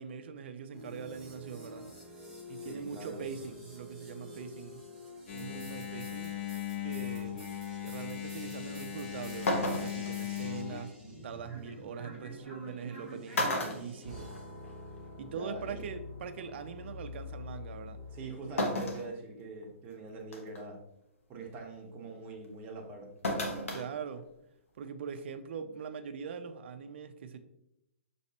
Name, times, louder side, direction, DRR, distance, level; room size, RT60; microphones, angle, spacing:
voice 1, 0.0-1.9 2.5-4.8 5.3-6.4 6.8-7.4 7.8-11.0 11.2-14.4 15.2-18.0 23.7-24.3 24.8-27.4, right 6 dB, 55° right, 9 dB, 0.5 m, -42 dB
sound 1, 0.7-18.7, left 1 dB, ahead, 1.2 m, -48 dB
voice 2, 2.6-3.2 5.4-5.7 15.3-15.8 18.1-20.8 21.3-23.1, right 3 dB, 25° right, 0 dB, 1.0 m, -44 dB
Engine, 5.3-10.8, left 11 dB, 55° left, 0.8 m, -38 dB
sound 2, 8.9-9.0 9.5-10.1 11.7-11.8 12.8-13.0 13.3-14.7 15.1-15.2 16.4-16.5 18.6-19.1 19.6-19.7 20.3-20.6 23.2-23.8 24.2-24.3, left 1 dB, 85° left, 1.0 m, -32 dB
5.9 x 3.1 x 2.8 m, 0.84 s
hypercardioid pair, 150°, 7 cm